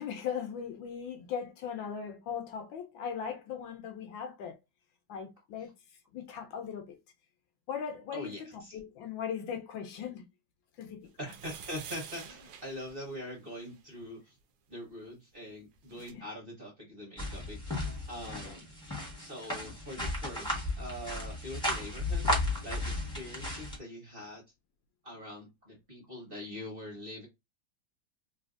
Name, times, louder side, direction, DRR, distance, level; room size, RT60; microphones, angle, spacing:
voice 1, 0.0-4.6 5.1-5.7 6.1-7.0 7.7-10.3 10.8-11.1 16.1-16.2 18.4-18.5, left 7 dB, 75° left, 1.3 m, -39 dB
voice 2, 8.1-8.8 11.2-14.3 14.7-18.7 19.2-24.4 25.0-27.3, equal, 35° right, 1.1 m, -43 dB
sound 1, 11.2-13.8 15.5-15.6 15.7-16.1, right 7 dB, 70° right, 0.9 m, -48 dB
sound 2, 17.2-23.8, left 1 dB, 5° left, 0.9 m, -34 dB
3.2 x 2.6 x 2.5 m
omnidirectional pair, 2.2 m